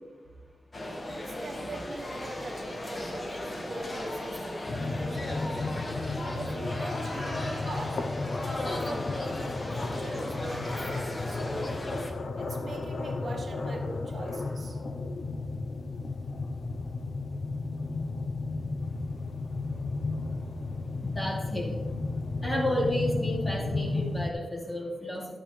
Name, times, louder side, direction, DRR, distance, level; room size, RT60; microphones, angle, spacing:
sound 1, 0.7-12.1, left 1 dB, 35° left, 1.3 m, -36 dB
voice 1, 1.1-5.3 6.3-8.0 8.6-11.7 12.3-14.8, right 2 dB, 65° right, 2 dB, 1.2 m, -42 dB
sound 2, 4.7-24.3, left 3 dB, 75° left, 0.8 m, -33 dB
voice 2, 21.0-21.9 22.4-25.3, left 1 dB, 20° left, -3 dB, 2.7 m, -31 dB
11.0 x 8.9 x 3.3 m, 1.2 s
wide cardioid pair, 120°, 0 cm